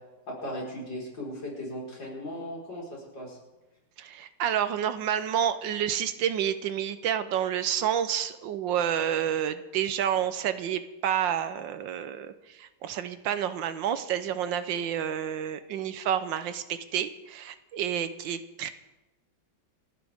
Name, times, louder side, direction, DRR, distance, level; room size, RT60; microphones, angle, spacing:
voice 1, 0.3-3.4, equal, 75° left, -4 dB, 5.5 m, -37 dB
voice 2, 4.0-18.7, right 9 dB, 80° right, 11 dB, 1.5 m, -29 dB
29.0 x 10.0 x 3.6 m, 1.0 s
omnidirectional pair, 2.0 m